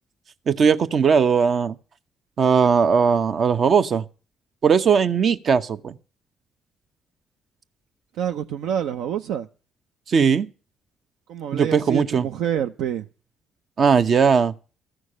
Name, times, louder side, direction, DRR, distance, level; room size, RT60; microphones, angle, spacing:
voice 1, 0.5-1.7 2.4-4.0 4.6-5.9 10.1-10.5 11.5-12.3 13.8-14.5, right 6 dB, 55° right, 0.9 m, -18 dB
voice 2, 8.2-9.5 11.3-13.1, right 9 dB, 75° right, 0.5 m, -27 dB
14.0 x 6.3 x 8.5 m
hypercardioid pair, 50°, 0 cm